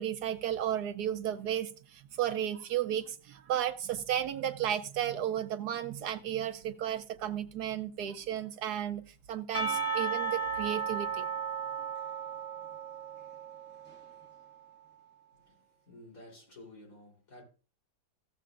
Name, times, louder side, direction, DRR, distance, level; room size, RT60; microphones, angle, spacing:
voice 1, 0.0-9.0 9.3-11.3, right 10 dB, 75° right, 1.1 m, -33 dB
Percussion, 9.5-14.4, right 5 dB, 5° left, 1.4 m, -35 dB
voice 2, 15.9-17.4, left 1 dB, 50° left, 4.0 m, -52 dB
16.0 x 7.5 x 2.4 m
omnidirectional pair, 1.8 m